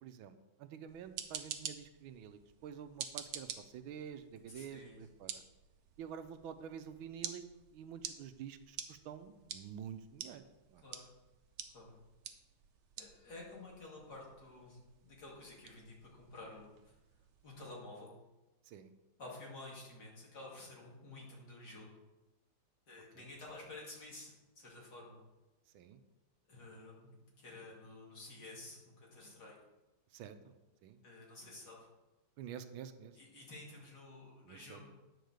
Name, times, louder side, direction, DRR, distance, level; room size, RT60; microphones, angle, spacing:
voice 1, 0.0-5.4 6.0-7.4 7.7-10.4 10.7-10.8 18.6-18.9 23.1-23.3 25.7-26.0 30.1-30.6 30.8-31.0 32.4-33.2 34.4-34.8, right 8 dB, 90° right, 10 dB, 1.5 m, -49 dB
sound 1, 0.9-17.7, right 8 dB, 65° right, 1.2 m, -50 dB
voice 2, 4.5-5.0 10.8-11.1 11.7-12.0 13.0-17.0 17.4-18.1 19.2-21.9 22.9-25.2 26.5-29.6 31.0-31.9 33.1-34.9, left 2 dB, 55° left, -3 dB, 2.8 m, -51 dB
9.4 x 4.6 x 6.5 m, 1.0 s
omnidirectional pair, 2.2 m